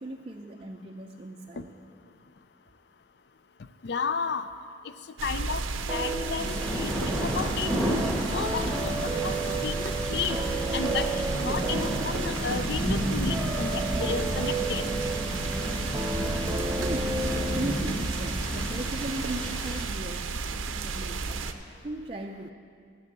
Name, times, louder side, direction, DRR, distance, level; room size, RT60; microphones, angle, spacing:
voice 1, 0.0-1.7 15.9-16.4 16.8-22.5, right 2 dB, 30° right, -1 dB, 0.4 m, -38 dB
voice 2, 3.8-4.5 5.2-5.6 5.9-6.9 7.2-7.7 8.3-9.0 9.2-10.4 10.7-14.9, left 5 dB, 55° left, 11 dB, 0.4 m, -33 dB
sound 1, 5.2-21.5, right 4 dB, 85° right, 0.6 m, -33 dB
sound 2, 5.9-18.3, right 2 dB, 10° right, 0.9 m, -34 dB
sound 3, 6.4-19.8, equal, 5° left, 1.2 m, -32 dB
11.0 x 6.9 x 8.0 m, 2.3 s
head